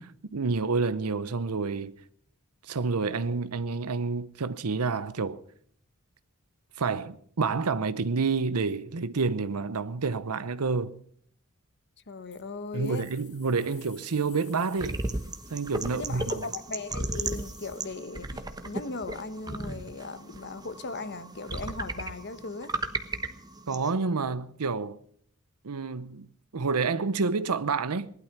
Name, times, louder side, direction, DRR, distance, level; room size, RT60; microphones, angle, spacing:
voice 1, 0.0-1.9 2.7-5.4 6.8-11.0 12.7-15.0 15.5-16.3 23.7-25.0 25.6-26.3 26.5-28.1, right 4 dB, 85° right, 0.8 m, -29 dB
voice 2, 12.1-13.0 15.8-22.7, left 3 dB, 50° left, 1.1 m, -38 dB
sound 1, 12.3-17.9, left 7 dB, 70° left, 6.1 m, -55 dB
sound 2, 14.8-23.9, right 2 dB, 20° right, 1.1 m, -35 dB
19.0 x 12.0 x 5.9 m
head